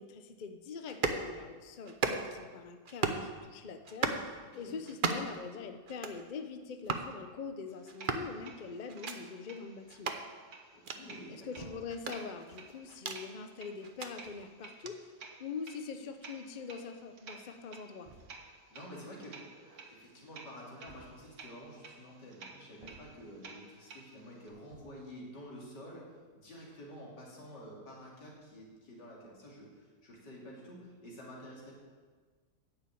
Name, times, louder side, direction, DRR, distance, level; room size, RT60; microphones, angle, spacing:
voice 1, 0.0-10.1 11.3-15.0 15.4-18.1, left 5 dB, 50° left, 8 dB, 0.5 m, -44 dB
sound 1, 0.9-1.2 1.9-2.4 2.9-3.3 3.8-4.3 4.9-5.4 5.9-6.2 6.8-7.1 7.9-8.3 8.9-9.2 9.9-10.2 10.8-11.0 11.9-13.2 13.8-14.1 14.8-15.0, right 4 dB, 45° right, 0.7 m, -35 dB
sound 2, 7.7-24.5, right 4 dB, 90° right, 2.1 m, -54 dB
voice 2, 10.7-11.7 18.7-26.0 26.3-31.7, equal, 80° left, -4 dB, 3.4 m, -49 dB
sound 3, 11.5-12.2 12.9-13.1 13.9-14.0 14.2-14.5 15.8-15.9 16.1-16.2 16.4-16.5 18.0-18.6 20.8-21.5 22.8-23.4 24.6-25.1, right 2 dB, 25° right, 1.0 m, -54 dB
9.7 x 7.0 x 8.5 m, 1.5 s
omnidirectional pair, 1.8 m